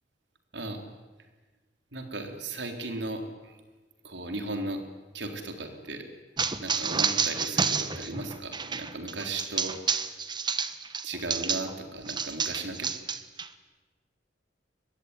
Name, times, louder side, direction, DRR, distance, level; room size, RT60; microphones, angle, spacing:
voice 1, 0.5-0.8 1.9-3.6 4.0-4.8 5.1-6.1 6.6-9.8 11.0-12.9, right 2 dB, 80° right, 5 dB, 3.9 m, -36 dB
sound 1, 6.4-11.7 12.1-13.5, right 5 dB, 25° right, 1.2 m, -29 dB
23.0 x 21.5 x 9.9 m, 1.2 s
head